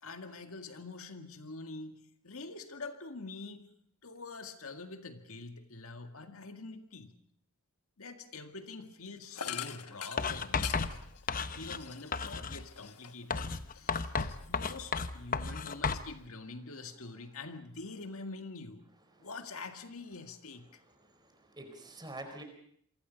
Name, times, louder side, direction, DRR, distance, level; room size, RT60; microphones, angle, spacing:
voice 1, 0.0-3.7 4.0-7.2 8.0-10.8 11.6-18.9 19.2-20.8, left 3 dB, 70° left, 7 dB, 1.9 m, -45 dB
sound 1, 9.3-13.3 13.7-14.9, left 9 dB, 85° left, 1.4 m, -44 dB
Writing, 10.2-11.9 12.1-12.7 13.3-16.1, left 4 dB, 40° left, 1.0 m, -33 dB
voice 2, 21.0-22.4, right 1 dB, 20° right, 6 dB, 4.5 m, -47 dB
28.0 x 24.0 x 5.3 m, 0.63 s
head